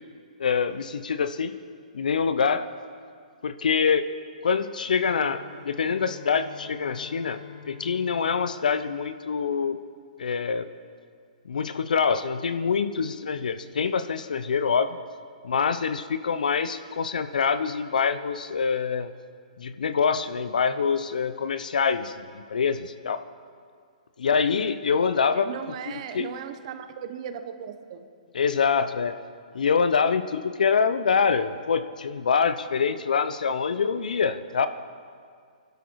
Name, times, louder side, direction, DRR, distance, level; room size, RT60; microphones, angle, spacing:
voice 1, 0.4-1.5 1.9-2.7 3.4-4.1 4.4-7.4 7.7-9.8 10.2-10.7 11.5-15.0 15.4-19.1 19.6-23.2 24.2-25.5 25.9-26.3 28.3-29.1 29.5-34.7, left 6 dB, 75° left, 12 dB, 0.8 m, -25 dB
Bowed string instrument, 4.9-10.0, left 7 dB, 45° left, 2.2 m, -48 dB
voice 2, 5.5-5.9 25.3-28.1, right 8 dB, 50° right, 9 dB, 1.2 m, -37 dB
23.0 x 12.0 x 4.8 m, 2.2 s
hypercardioid pair, 135°, 4 cm